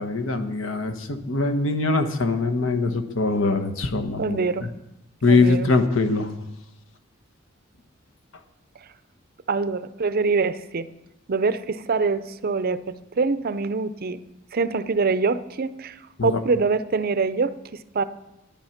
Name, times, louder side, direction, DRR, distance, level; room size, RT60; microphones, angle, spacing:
voice 1, 0.0-4.7 5.2-6.3 16.2-16.4, left 3 dB, 70° left, 7 dB, 1.2 m, -22 dB
voice 2, 4.2-4.7 5.3-5.7 9.5-10.9 11.3-12.8 13.1-14.2 14.5-16.0 16.2-18.0, right 4 dB, 50° right, 13 dB, 0.6 m, -24 dB
10.5 x 10.5 x 5.9 m, 0.90 s
head